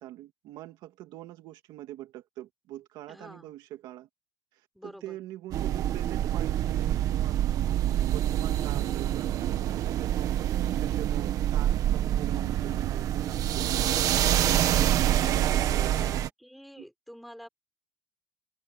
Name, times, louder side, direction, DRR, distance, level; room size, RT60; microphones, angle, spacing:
voice 1, 0.0-4.1 4.5-7.8 8.1-14.4 15.1-16.3 16.8-16.9, right 14 dB, 65° right, 2.2 m, -43 dB
voice 2, 3.1-3.5 4.7-5.2 15.1-17.5, equal, ahead, 5.6 m, -48 dB
sound 1, 5.5-16.3, right 12 dB, 50° right, 1.5 m, -26 dB
cardioid pair, 160°, 8 cm